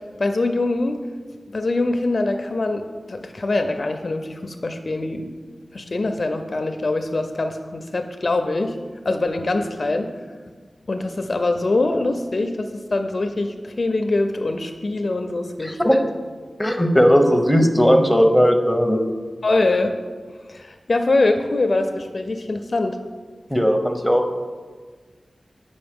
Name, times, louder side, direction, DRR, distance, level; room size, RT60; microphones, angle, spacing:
voice 1, 0.2-1.0 1.5-5.3 5.7-8.8 9.0-10.1 10.9-15.8 19.4-20.0 20.5-23.0, left 2 dB, 50° left, 6 dB, 0.4 m, -23 dB
voice 2, 15.6-16.0 16.6-19.0 23.5-24.2, equal, ahead, 4 dB, 0.7 m, -17 dB
8.6 x 5.1 x 3.5 m, 1.5 s
wide cardioid pair, 95°, 0 cm